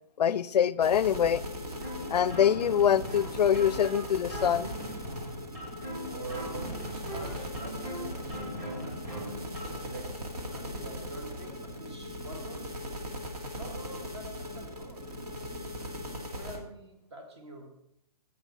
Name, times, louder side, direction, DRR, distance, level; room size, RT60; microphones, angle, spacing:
voice 1, 0.2-1.4 2.1-4.7, left 9 dB, 90° left, 0.5 m, -24 dB
sound 1, 0.8-16.6, equal, 80° right, 2.2 m, -39 dB
sound 2, 1.8-9.8, equal, 20° right, 2.5 m, -40 dB
voice 2, 6.1-9.2 9.6-10.3 10.5-12.8 13.5-15.5 16.3-17.7, right 2 dB, 40° right, 1.9 m, -46 dB
10.5 x 7.8 x 4.1 m
hypercardioid pair, 180°, 20 cm